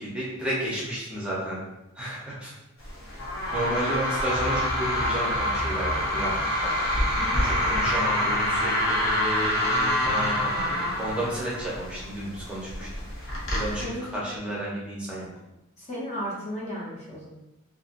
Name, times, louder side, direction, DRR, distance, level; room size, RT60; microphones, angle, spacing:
voice 1, 0.0-1.6 1.9-2.5 3.5-6.4 6.6-6.8 7.4-12.9 13.5-15.3, right 1 dB, 5° right, -7 dB, 0.6 m, -32 dB
sound 1, 2.8-13.8, left 1 dB, 65° left, 0.8 m, -26 dB
voice 2, 7.2-7.5 13.8-14.1 15.8-17.3, equal, 30° left, -6 dB, 0.6 m, -34 dB
2.7 x 2.6 x 2.5 m, 0.95 s
head